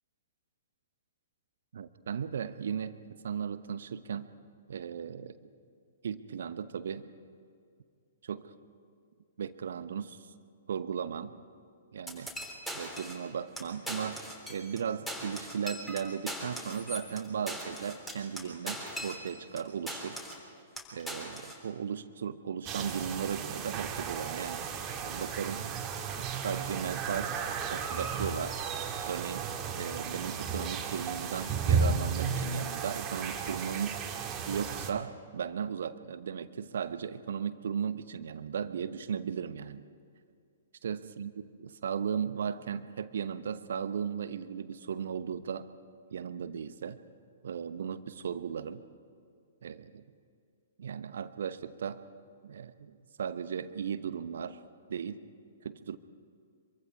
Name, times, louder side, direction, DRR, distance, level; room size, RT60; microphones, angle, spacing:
voice 1, 1.7-3.0 3.2-4.3 4.7-5.4 6.0-7.1 8.2-8.5 9.4-10.3 10.7-11.4 11.9-12.3 12.7-14.2 14.5-20.2 20.9-24.6 25.0-25.8 26.3-28.6 29.0-29.5 29.7-34.0 34.5-39.8 40.8-45.7 46.1-47.0 47.4-48.8 49.6-50.0 50.8-52.0 52.4-54.6 54.9-55.3 55.6-56.0, right 7 dB, 55° right, 13 dB, 1.0 m, -36 dB
sound 1, 12.1-13.3 13.6-13.7 13.9-14.8 15.1-19.6 19.9-20.5 20.8-21.6, equal, 5° left, 3.6 m, -40 dB
sound 2, 22.7-34.9, right 6 dB, 20° right, 2.1 m, -34 dB
26.0 x 23.5 x 4.8 m, 2.3 s
figure-of-eight pair, 115°, 0 cm